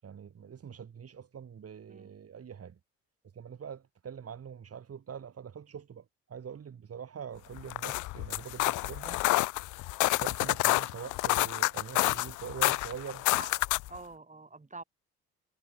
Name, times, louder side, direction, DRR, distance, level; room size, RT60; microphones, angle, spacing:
voice 1, 0.0-2.8 3.3-9.2 10.2-13.2, right 7 dB, 45° right, 4.3 m, -44 dB
sound 1, 7.6-14.0, left 20 dB, 70° left, 0.6 m, -29 dB
voice 2, 13.9-14.8, right 3 dB, 25° right, 7.9 m, -46 dB
hypercardioid pair, 60°, 32 cm